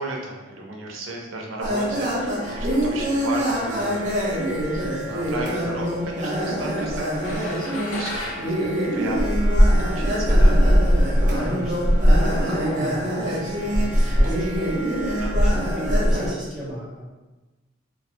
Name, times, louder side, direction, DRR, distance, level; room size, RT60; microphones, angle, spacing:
voice 1, 0.0-10.6 10.9-11.6 15.1-15.3, right 2 dB, 85° right, 0 dB, 0.5 m, -35 dB
sound 1, 1.6-16.3, equal, 40° right, 0.6 m, -21 dB
sound 2, 7.2-9.8, left 2 dB, 80° left, 0.5 m, -36 dB
voice 2, 11.4-14.8 15.3-17.0, equal, ahead, -8 dB, 0.6 m, -34 dB
2.1 x 2.1 x 2.8 m, 1.1 s
head